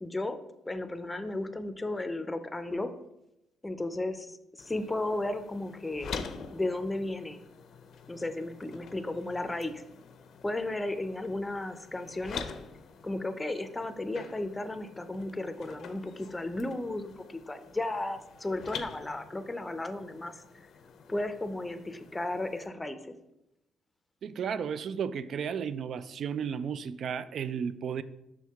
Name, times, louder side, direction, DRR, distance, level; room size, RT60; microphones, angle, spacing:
voice 1, 0.0-0.4 0.7-2.9 3.6-6.1 6.5-7.4 8.1-9.8 10.4-12.4 13.0-20.4 21.1-23.1, left 2 dB, 15° left, 0.5 m, -34 dB
sound 1, 4.6-22.7, left 6 dB, 65° left, 0.5 m, -46 dB
voice 2, 24.2-28.0, right 7 dB, 60° right, 0.3 m, -33 dB
6.3 x 4.5 x 3.5 m
cardioid pair, 90°, 0 cm